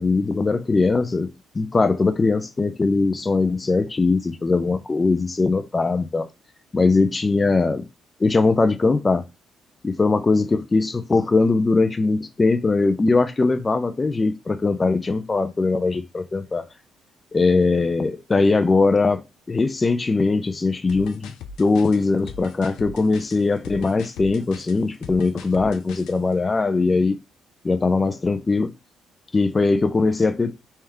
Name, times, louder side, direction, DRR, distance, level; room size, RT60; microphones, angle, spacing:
voice 1, 0.0-6.3 6.7-7.9 8.2-9.3 9.8-16.7 17.3-21.3 21.6-27.2 27.6-28.7 29.3-30.6, left 3 dB, 25° left, 0.5 m, -20 dB
sound 1, 20.9-26.2, left 5 dB, 90° left, 0.5 m, -39 dB
3.4 x 2.8 x 3.6 m
cardioid pair, 90°, 0 cm